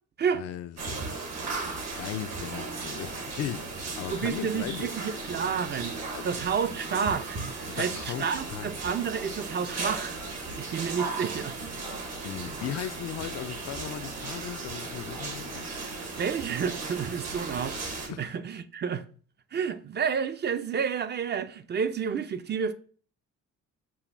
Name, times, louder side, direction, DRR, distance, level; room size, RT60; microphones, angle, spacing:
voice 1, 0.3-1.2 2.0-4.9 6.1-6.3 7.8-8.8 12.2-15.7 18.1-18.3, left 11 dB, 55° left, 0.4 m, -37 dB
sound 1, 0.8-18.1, right 3 dB, 60° right, 1.2 m, -36 dB
sound 2, 2.3-16.1, right 2 dB, 85° right, 2.2 m, -53 dB
voice 2, 4.1-7.4 7.7-10.2 10.6-11.6 15.7-15.9 16.2-19.0 19.5-22.7, right 6 dB, 35° right, 0.5 m, -30 dB
7.0 x 2.6 x 2.5 m
cardioid pair, 90°, 30 cm